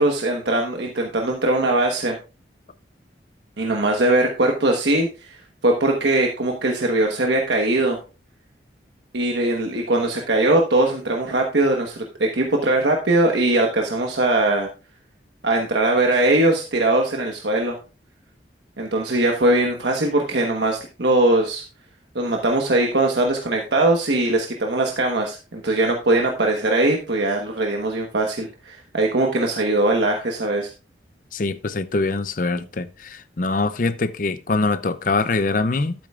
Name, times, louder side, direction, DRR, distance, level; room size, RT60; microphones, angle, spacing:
voice 1, 0.0-2.2 3.6-5.4 5.6-8.0 9.1-14.7 15.4-17.8 18.8-21.6 22.1-30.7, right 2 dB, 70° right, 1.2 m, -21 dB
voice 2, 31.3-35.9, left 3 dB, 45° left, 0.6 m, -23 dB
12.0 x 8.6 x 2.4 m
head